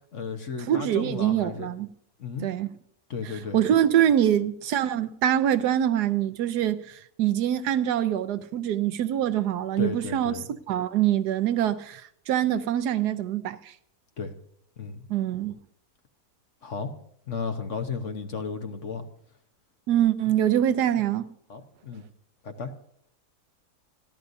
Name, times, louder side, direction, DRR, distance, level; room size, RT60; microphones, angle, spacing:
voice 1, 0.1-1.7 2.2-2.5 3.1-3.6 9.8-10.5 14.2-14.3 14.8-15.0 16.6-16.9 17.3-19.0 21.5-22.0 22.4-22.7, left 5 dB, 50° left, 1.4 m, -34 dB
voice 2, 0.7-1.9 2.4-2.7 3.2-10.3 10.7-12.0 12.3-13.6 15.1-15.6 19.9-21.2, right 11 dB, 80° right, 1.3 m, -24 dB
27.5 x 11.5 x 2.7 m
omnidirectional pair, 1.7 m